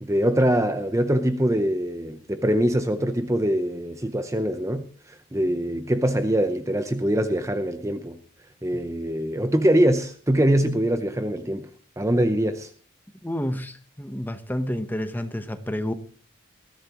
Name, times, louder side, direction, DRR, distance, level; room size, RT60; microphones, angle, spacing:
voice 1, 0.0-8.2 8.6-11.7 12.0-12.7, right 1 dB, 15° right, 0.7 m, -23 dB
voice 2, 13.2-15.9, left 1 dB, 10° left, 0.9 m, -29 dB
20.5 x 14.5 x 3.0 m
head